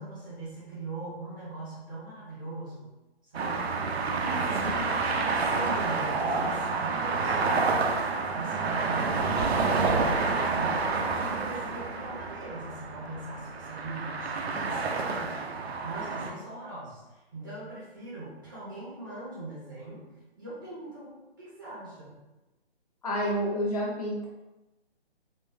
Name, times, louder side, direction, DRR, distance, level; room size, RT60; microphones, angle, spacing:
voice 1, 0.0-2.9 3.3-3.7 4.3-10.9 11.1-20.1 20.4-21.1 21.4-22.1, right 2 dB, 20° right, -7 dB, 0.6 m, -41 dB
sound 1, 3.3-16.3, right 4 dB, 75° right, 0.6 m, -29 dB
voice 2, 23.0-24.3, equal, 35° left, -4 dB, 0.8 m, -29 dB
3.8 x 2.4 x 2.5 m, 1.0 s
figure-of-eight pair, 150°, 32 cm